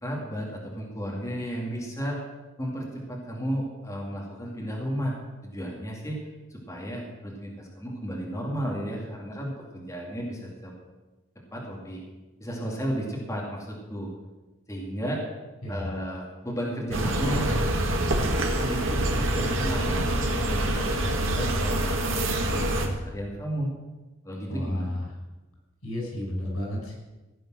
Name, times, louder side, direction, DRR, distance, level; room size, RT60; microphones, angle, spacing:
voice 1, 0.0-2.2 2.6-5.2 5.4-6.2 6.5-10.7 11.5-12.0 12.4-14.1 14.7-15.2 15.7-17.5 18.6-20.1 20.4-23.7 24.2-25.0, equal, 15° left, -3 dB, 2.6 m, -33 dB
voice 2, 15.6-16.0 24.5-25.1 25.8-26.9, left 1 dB, 90° left, -1 dB, 6.0 m, -32 dB
sound 1, 16.9-22.9, right 1 dB, 65° right, 2.0 m, -25 dB
16.0 x 9.1 x 6.3 m, 1.1 s
head